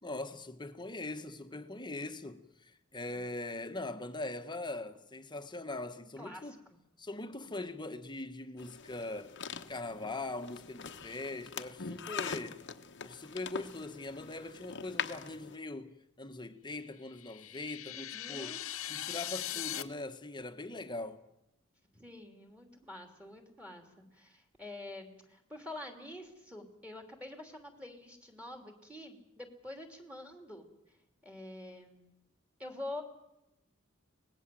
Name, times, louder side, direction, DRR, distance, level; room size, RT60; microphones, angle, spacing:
voice 1, 0.0-6.6 7.0-12.6 13.0-18.6 18.9-21.2, left 2 dB, 20° left, 1.4 m, -41 dB
voice 2, 6.2-6.8 17.9-18.6 19.5-19.7 21.9-31.0 31.2-32.1 32.6-33.0, left 1 dB, 5° right, 3.1 m, -47 dB
sound 1, 8.6-15.6, left 6 dB, 60° left, 1.1 m, -43 dB
sound 2, 17.1-19.8, left 12 dB, 75° left, 1.1 m, -40 dB
24.5 x 19.0 x 7.7 m
head